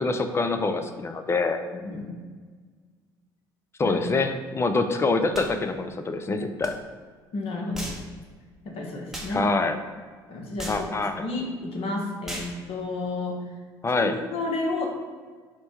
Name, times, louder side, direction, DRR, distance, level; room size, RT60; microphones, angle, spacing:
voice 1, 0.0-1.6 3.8-6.7 9.3-9.8 10.7-11.3 13.8-14.2, left 3 dB, 20° left, 8 dB, 0.4 m, -25 dB
voice 2, 1.7-2.1 3.8-4.0 7.3-7.9 8.6-9.4 10.3-13.4 14.0-14.9, left 2 dB, 55° left, 0 dB, 1.0 m, -31 dB
sound 1, 5.3-5.5 6.6-6.7 7.7-8.1 9.1-9.4 10.6-10.9 12.3-12.6, equal, 5° right, 0.8 m, -36 dB
4.3 x 2.2 x 4.3 m, 1.5 s
hypercardioid pair, 60°, 12 cm